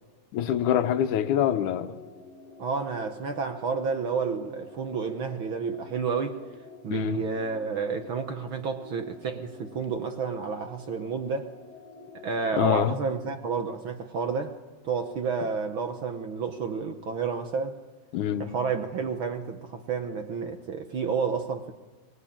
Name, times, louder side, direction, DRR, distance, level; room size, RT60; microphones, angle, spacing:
voice 1, 0.3-2.0 6.9-7.2 12.5-13.0 18.1-18.5, left 10 dB, 85° left, 2.5 m, -25 dB
sound 1, 1.2-13.1, left 4 dB, 5° left, 2.0 m, -48 dB
voice 2, 2.6-6.4 6.8-11.5 12.2-14.5 14.8-17.8 18.4-21.7, right 5 dB, 60° right, 1.5 m, -30 dB
24.5 x 20.5 x 8.8 m
omnidirectional pair, 3.4 m